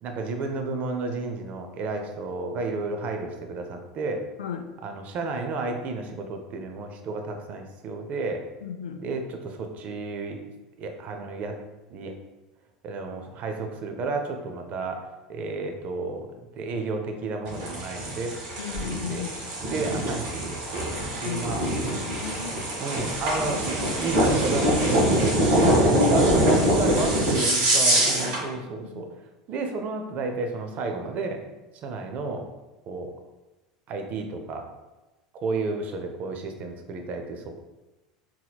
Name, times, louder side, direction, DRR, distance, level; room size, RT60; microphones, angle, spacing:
voice 1, 0.0-4.3 4.8-8.4 9.0-10.4 10.8-11.6 11.9-12.1 12.8-15.0 15.3-18.4 18.8-19.2 19.7-21.7 22.7-29.1 29.5-31.4 31.8-32.5 32.9-33.1 33.9-34.7 35.3-37.5, right 3 dB, 45° right, 4 dB, 0.5 m, -32 dB
voice 2, 8.6-9.0 18.6-19.3 21.2-21.4 21.9-22.5 25.9-26.3 26.6-26.7 28.2-29.0, left 6 dB, 85° left, 7 dB, 0.3 m, -33 dB
sound 1, 17.5-28.4, right 1 dB, 65° right, 1.3 m, -24 dB
4.0 x 2.9 x 2.3 m, 1.1 s
hypercardioid pair, 90°, 3 cm